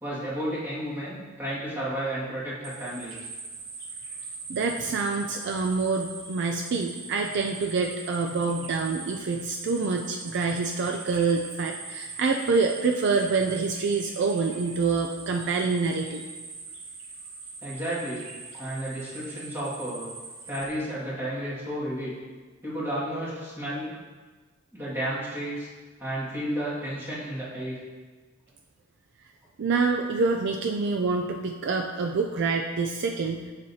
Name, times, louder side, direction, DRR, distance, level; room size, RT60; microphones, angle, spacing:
voice 1, 0.0-3.1 17.6-18.3 18.5-20.1 20.5-22.1 22.6-23.9 24.7-25.7 26.0-27.8, right 1 dB, 10° right, -9 dB, 2.0 m, -32 dB
sound 1, 2.6-20.6, right 4 dB, 80° right, 1.0 m, -41 dB
voice 2, 4.5-16.3 29.6-33.4, right 4 dB, 60° right, 3 dB, 0.4 m, -26 dB
7.5 x 6.1 x 2.8 m, 1.4 s
head